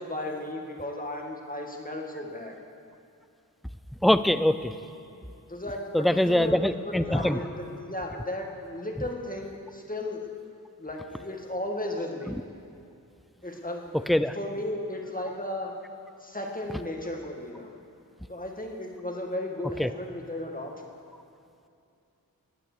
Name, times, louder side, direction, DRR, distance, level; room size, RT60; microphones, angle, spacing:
voice 1, 0.0-2.6 5.5-6.6 6.9-10.3 10.8-12.4 13.4-15.8 16.2-17.7 18.3-20.8, left 1 dB, 25° left, 1 dB, 1.8 m, -35 dB
voice 2, 4.0-4.7 5.9-7.4 12.3-12.4 14.1-14.4 19.8-19.9, left 1 dB, ahead, 12 dB, 0.4 m, -23 dB
16.0 x 9.2 x 6.7 m, 2.6 s
wide cardioid pair, 60°, 36 cm